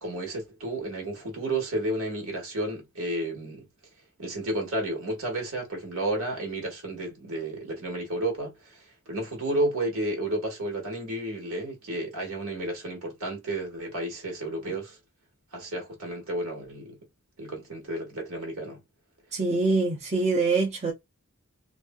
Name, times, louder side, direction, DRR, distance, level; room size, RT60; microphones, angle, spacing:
voice 1, 0.0-3.7 4.2-8.8 9.1-15.0 15.5-17.0 17.4-18.8, right 1 dB, 65° right, 1.4 m, -32 dB
voice 2, 19.3-20.9, right 3 dB, 30° right, 0.6 m, -24 dB
3.0 x 2.6 x 2.2 m
head